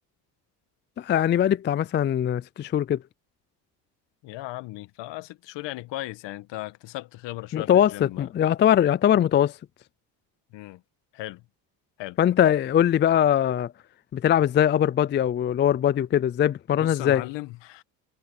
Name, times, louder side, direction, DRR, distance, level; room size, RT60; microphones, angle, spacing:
voice 1, 1.0-3.0 7.5-9.6 12.2-13.7 14.1-17.2, left 10 dB, 25° left, 0.4 m, -21 dB
voice 2, 4.2-8.3 10.5-10.8 11.1-11.4 12.0-12.2 16.7-17.8, left 17 dB, 65° left, 1.8 m, -37 dB
supercardioid pair, 80°, 46 cm